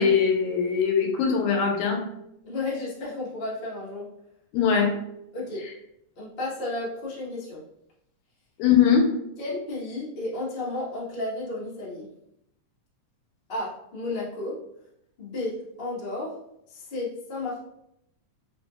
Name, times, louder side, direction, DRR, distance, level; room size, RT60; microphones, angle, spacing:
voice 1, 0.0-2.0 4.5-4.9 8.6-9.1, left 7 dB, 85° left, 1 dB, 2.1 m, -21 dB
voice 2, 2.4-4.1 5.3-5.6 6.2-7.6 9.4-12.1 13.5-14.6 15.2-16.3 16.7-17.6, left 2 dB, 60° left, -8 dB, 0.5 m, -32 dB
4.9 x 2.6 x 2.3 m, 0.78 s
omnidirectional pair, 3.4 m